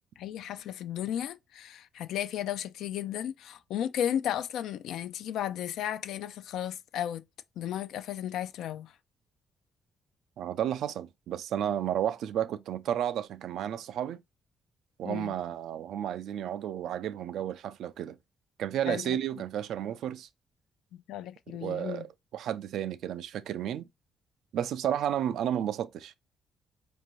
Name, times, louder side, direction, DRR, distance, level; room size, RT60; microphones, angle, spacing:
voice 1, 0.2-7.2 7.6-8.9 15.0-15.3 18.9-19.2 20.9-22.1, left 10 dB, 80° left, 0.3 m, -34 dB
voice 2, 10.4-14.2 15.0-18.2 18.6-20.3 21.6-22.1 22.3-23.9 24.5-26.2, right 10 dB, 75° right, 0.3 m, -32 dB
4.4 x 2.6 x 2.9 m
cardioid pair, 90°, 0 cm